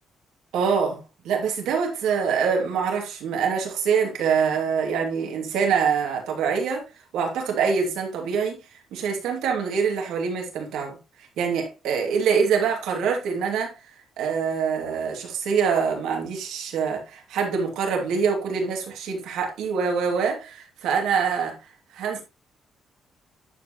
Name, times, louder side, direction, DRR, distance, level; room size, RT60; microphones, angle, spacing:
voice 1, 0.5-6.8 7.1-8.6 8.9-11.0 11.4-13.7 14.2-21.6 21.9-22.2, right 6 dB, 85° right, 2.4 m, -25 dB
11.0 x 4.8 x 3.0 m
cardioid pair, 90°, 0 cm